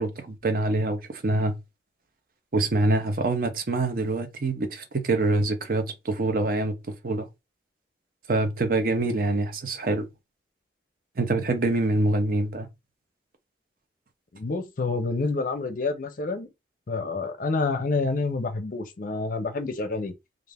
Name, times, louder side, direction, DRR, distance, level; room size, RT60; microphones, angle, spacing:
voice 1, 0.0-1.6 2.5-7.3 8.3-10.1 11.2-12.7, right 2 dB, 50° right, 0.5 m, -25 dB
voice 2, 14.3-16.5 16.9-20.1, left 3 dB, 45° left, 0.5 m, -28 dB
2.4 x 2.4 x 3.3 m
head